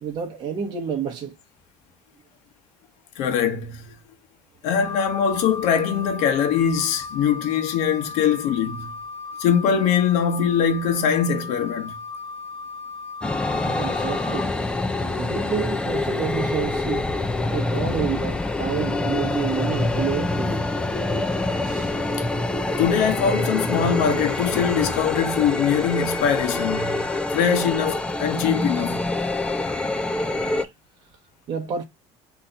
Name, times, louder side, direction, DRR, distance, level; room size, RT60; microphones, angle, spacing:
voice 1, 0.0-1.3 13.6-14.5 15.0-17.2 17.5-20.6 21.6-22.0 31.5-31.8, right 7 dB, 35° right, 0.9 m, -29 dB
voice 2, 3.2-3.9 4.6-8.9 9.4-11.9 17.7-18.0 22.2-22.3 22.8-27.0 27.3-29.0, left 7 dB, 75° left, 1.0 m, -22 dB
Wind instrument woodwind instrument, 4.8-14.4, left 4 dB, 55° left, 1.2 m, -36 dB
sound 1, 13.2-30.6, left 2 dB, 10° left, 0.4 m, -26 dB
3.9 x 2.9 x 4.3 m
cardioid pair, 165°, 12 cm